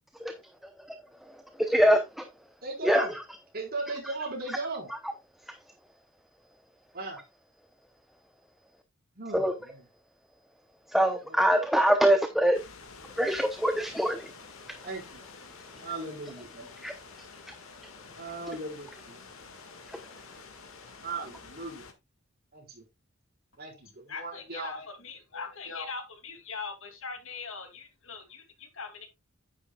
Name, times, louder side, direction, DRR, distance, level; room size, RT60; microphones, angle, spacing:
voice 1, 1.2-2.3 2.8-3.2 4.0-4.1 4.5-4.6 4.9-5.0 9.3-9.5 10.9-12.6 13.2-14.3 16.8-16.9 17.5-17.6 19.9-20.0, equal, ahead, 0.9 m, -25 dB
voice 2, 2.6-3.1 3.5-4.9 6.9-7.2 9.2-9.8 11.3-11.4 14.8-15.2 15.8-16.7 18.1-19.3 21.0-21.9 22.5-22.8 23.6-24.7, right 3 dB, 50° right, 4.5 m, -37 dB
sound 1, 12.5-21.9, left 4 dB, 85° left, 1.9 m, -49 dB
voice 3, 24.1-29.1, left 4 dB, 70° left, 2.6 m, -41 dB
9.8 x 9.5 x 2.4 m
head